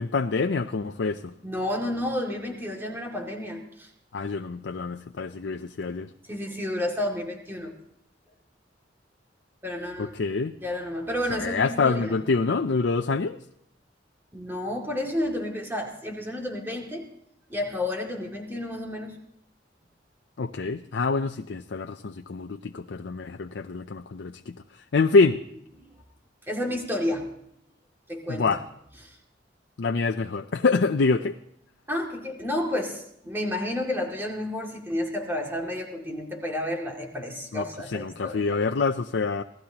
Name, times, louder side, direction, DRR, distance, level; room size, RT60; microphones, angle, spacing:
voice 1, 0.0-1.3 4.1-6.1 10.0-10.5 11.3-13.4 20.4-24.5 24.9-25.4 28.3-28.6 29.8-31.4 37.5-37.6 37.9-39.4, left 4 dB, 80° left, 7 dB, 0.5 m, -26 dB
voice 2, 1.4-3.9 6.3-7.7 9.6-10.1 10.6-12.2 14.3-17.1 17.5-19.2 25.8-25.9 26.5-27.3 28.1-28.6 29.0-29.2 31.9-38.6, left 1 dB, 10° right, 0 dB, 2.3 m, -31 dB
27.0 x 16.5 x 2.9 m, 0.74 s
head